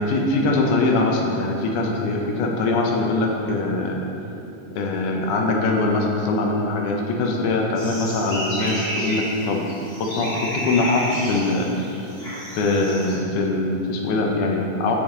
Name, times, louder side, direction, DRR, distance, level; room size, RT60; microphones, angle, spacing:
voice 1, 0.0-4.0 4.8-9.7 10.0-11.7 12.6-15.0, left 2 dB, 80° left, 0 dB, 2.2 m, -22 dB
sound 1, 7.7-13.1, equal, 25° left, 1.5 m, -31 dB
7.1 x 7.1 x 3.7 m, 2.8 s
omnidirectional pair, 3.6 m